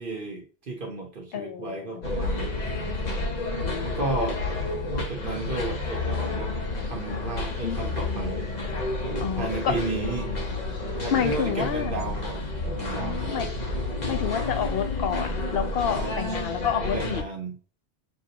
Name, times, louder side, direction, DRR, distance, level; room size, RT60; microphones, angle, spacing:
voice 1, 0.0-3.2 3.8-4.4 4.9-6.6 6.8-8.5 9.3-10.3 11.0-13.4 15.9-16.1 16.7-17.6, right 2 dB, 55° right, 1 dB, 1.1 m, -33 dB
voice 2, 1.3-2.0 3.6-3.9 7.5-7.8 9.2-9.8 11.1-11.9 13.0-13.5 14.1-17.2, left 8 dB, 65° left, 8 dB, 0.8 m, -29 dB
sound 1, 2.0-17.2, left 2 dB, 45° left, 1.0 m, -30 dB
6.6 x 2.3 x 2.8 m, 0.37 s
omnidirectional pair, 1.1 m